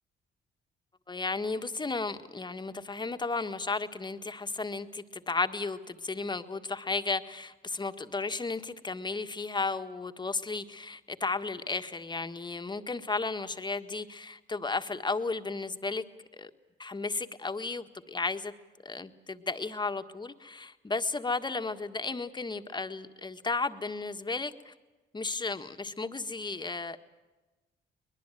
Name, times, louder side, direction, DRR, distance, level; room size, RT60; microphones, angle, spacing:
voice 1, 1.1-16.0 16.3-16.5 16.8-18.5 18.8-24.7 25.1-27.0, left 3 dB, 20° left, 8 dB, 1.6 m, -34 dB
23.5 x 21.0 x 9.1 m, 1.2 s
cardioid pair, 90°, 20 cm